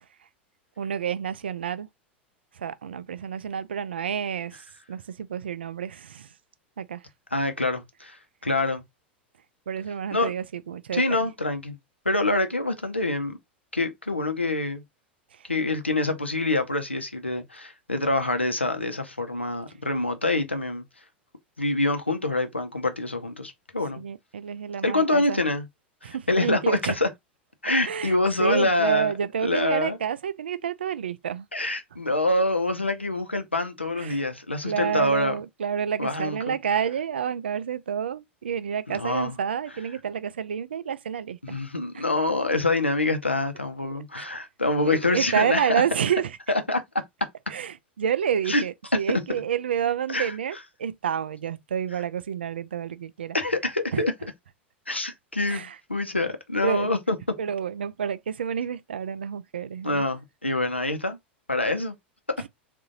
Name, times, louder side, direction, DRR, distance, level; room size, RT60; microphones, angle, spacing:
voice 1, 0.8-1.9 2.5-4.6 4.9-6.3 6.8-7.0 9.7-11.3 15.3-15.5 24.0-25.4 26.0-27.0 27.8-31.5 34.0-34.2 34.6-41.6 41.9-42.0 44.2-44.3 44.8-46.4 47.5-53.4 53.9-54.0 55.5-55.8 56.6-56.9 57.4-60.1 62.4-62.5, right 8 dB, 70° right, 0.4 m, -29 dB
voice 2, 7.3-8.8 10.1-10.3 10.9-11.8 12.0-13.4 13.7-14.8 15.5-20.8 21.6-24.0 24.8-25.6 26.1-27.1 27.6-29.1 29.4-30.0 31.5-35.4 36.0-36.5 38.9-39.3 41.4-45.8 46.7-46.8 48.5-48.6 49.1-49.2 50.1-50.3 53.3-54.1 54.9-57.2 59.8-61.2 61.5-61.9, left 2 dB, 85° left, 0.8 m, -26 dB
3.7 x 2.7 x 3.9 m
figure-of-eight pair, 90°, 6 cm